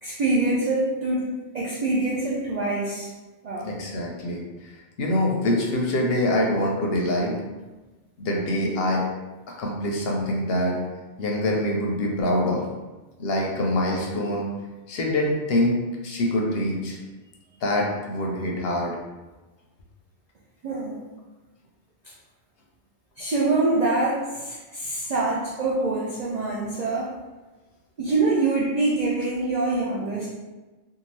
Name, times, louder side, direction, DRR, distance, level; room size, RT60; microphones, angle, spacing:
voice 1, 0.0-3.1 3.4-3.7 20.6-21.1 23.2-27.1 28.0-30.3, right 2 dB, 60° right, -6 dB, 0.4 m, -25 dB
voice 2, 3.6-4.4 5.0-7.4 8.2-9.0 9.6-10.8 11.2-12.6 13.2-14.5 14.9-17.0 17.6-19.0, left 1 dB, 65° left, -1 dB, 0.7 m, -24 dB
2.8 x 2.3 x 3.0 m, 1.2 s
omnidirectional pair, 1.2 m